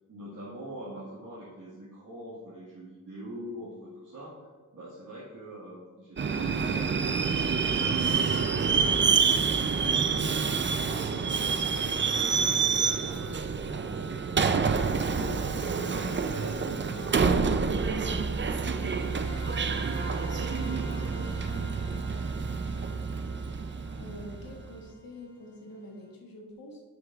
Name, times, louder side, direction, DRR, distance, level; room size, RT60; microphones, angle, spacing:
voice 1, 0.1-8.9 9.5-18.2 18.5-22.3, right 1 dB, 70° right, -10 dB, 1.8 m, -44 dB
Subway metro underground, 6.2-24.6, right 5 dB, 35° right, 0.4 m, -28 dB
sound 1, 18.8-25.5, equal, 45° left, 1.8 m, -45 dB
voice 2, 24.0-26.8, left 1 dB, 85° left, 0 dB, 1.4 m, -45 dB
9.7 x 6.4 x 2.4 m, 1.4 s
wide cardioid pair, 90°, 34 cm